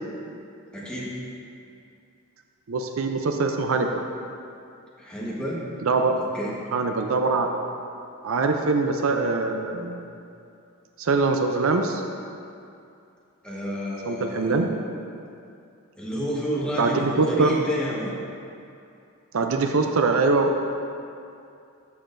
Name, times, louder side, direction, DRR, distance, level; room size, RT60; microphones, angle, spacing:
voice 1, 0.7-1.1 5.0-5.7 6.2-6.6 13.4-14.6 16.0-18.1, equal, 5° left, -6 dB, 1.3 m, -30 dB
voice 2, 2.7-4.0 5.8-6.2 6.7-7.5 8.2-10.0 11.0-12.0 14.1-14.7 16.8-17.6 19.3-20.7, right 3 dB, 65° right, 4 dB, 0.5 m, -23 dB
12.5 x 6.5 x 2.6 m, 2.5 s
head